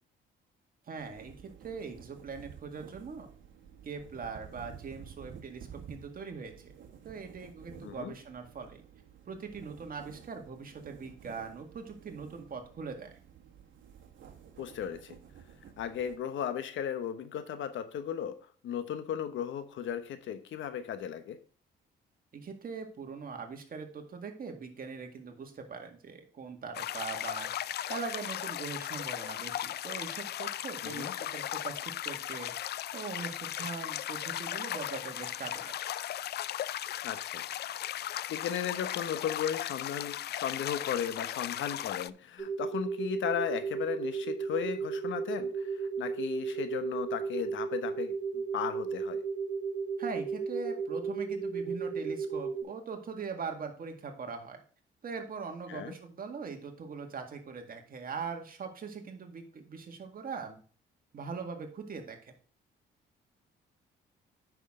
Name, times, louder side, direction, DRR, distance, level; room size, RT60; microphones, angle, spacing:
voice 1, 0.9-3.3 3.8-6.7 7.0-8.8 9.3-13.1 22.3-32.5 32.9-35.7 50.0-54.6 55.0-60.6 61.1-62.3, right 5 dB, 45° right, 4 dB, 2.0 m, -41 dB
sound 1, 1.0-16.2, right 7 dB, 70° right, 1.6 m, -52 dB
voice 2, 14.6-15.2 15.8-18.4 18.6-21.4 30.8-31.1 37.0-37.4 38.0-49.2 55.7-55.9, left 9 dB, 75° left, 10 dB, 1.1 m, -36 dB
sound 2, 26.7-42.1, left 12 dB, 55° left, 0.4 m, -37 dB
sound 3, 42.4-52.6, right 5 dB, 10° left, 5.0 m, -34 dB
9.0 x 6.4 x 3.7 m, 0.42 s
cardioid pair, 90°, 20 cm